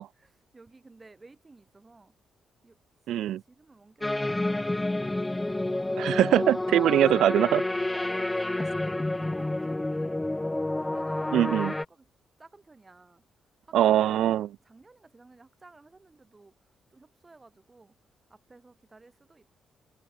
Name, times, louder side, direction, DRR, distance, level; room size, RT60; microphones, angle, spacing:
voice 1, 0.2-2.1 2.6-2.8 3.1-5.5 5.9-6.6 6.9-7.1 7.9-11.4 11.9-12.1 12.4-13.2 13.6-14.3 14.6-16.5 16.9-18.0 18.3-19.5, right 3 dB, 20° right, 7.6 m, -54 dB
voice 2, 3.1-3.4 6.0-7.6 11.3-11.7 13.7-14.5, right 12 dB, 80° right, 0.5 m, -22 dB
sound 1, 4.0-11.8, left 2 dB, 10° left, 0.3 m, -29 dB
cardioid pair, 105°, 0 cm